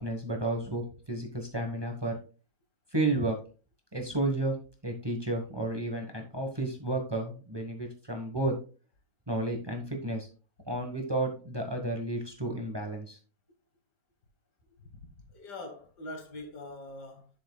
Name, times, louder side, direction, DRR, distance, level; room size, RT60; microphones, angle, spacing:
voice 1, 0.0-2.2 2.9-3.4 3.9-4.6 4.8-8.6 9.3-10.3 10.7-13.2, right 2 dB, 15° right, 1.2 m, -32 dB
voice 2, 14.8-17.3, left 2 dB, 90° left, 2.2 m, -44 dB
10.5 x 7.1 x 2.3 m
omnidirectional pair, 1.7 m